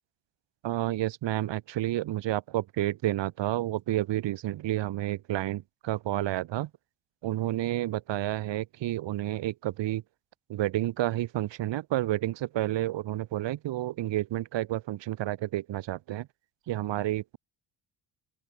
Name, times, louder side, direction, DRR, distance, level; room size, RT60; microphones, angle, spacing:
voice 1, 0.6-6.7 7.2-10.0 10.5-16.3 16.7-17.4, right 14 dB, 80° right, 3.7 m, -30 dB
open air
cardioid pair, 120°, 43 cm